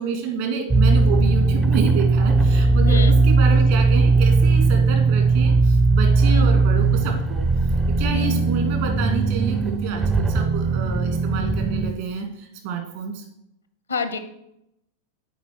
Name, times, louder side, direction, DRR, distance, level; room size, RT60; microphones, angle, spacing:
voice 1, 0.0-7.4 7.9-13.2, right 5 dB, 55° right, 3 dB, 2.1 m, -29 dB
sound 1, 0.7-11.9, right 3 dB, 15° right, 0.5 m, -18 dB
voice 2, 2.8-3.2 6.3-6.5 8.1-8.4 13.9-14.2, left 4 dB, 75° left, 10 dB, 0.7 m, -28 dB
8.3 x 4.8 x 6.0 m, 0.81 s
figure-of-eight pair, 90°, 0 cm